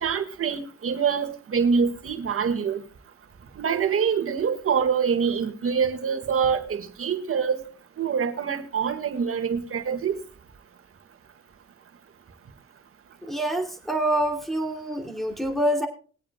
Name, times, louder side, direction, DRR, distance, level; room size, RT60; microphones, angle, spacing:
voice 1, 0.0-2.8 3.6-7.6 8.0-10.2, right 6 dB, 45° right, 7 dB, 1.9 m, -25 dB
voice 2, 13.2-15.9, right 1 dB, ahead, 4 dB, 2.8 m, -26 dB
21.0 x 8.7 x 2.3 m, 0.39 s
cardioid pair, 90°, 30 cm